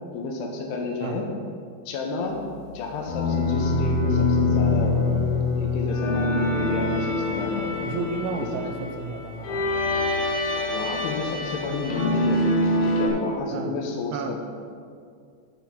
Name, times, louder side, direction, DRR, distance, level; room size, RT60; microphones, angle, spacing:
voice 1, 0.1-1.2 1.9-2.4 2.7-5.2 5.6-7.9 8.6-8.7 9.4-9.7 10.5-12.4 12.8-14.4, left 3 dB, 80° left, 1 dB, 2.9 m, -31 dB
sound 1, 3.0-13.1, left 2 dB, 65° left, 2.9 m, -25 dB
voice 2, 7.8-9.6 13.5-13.7 14.1-14.4, right 5 dB, 75° right, 5 dB, 2.4 m, -32 dB
11.0 x 3.8 x 5.8 m, 2.3 s
omnidirectional pair, 4.9 m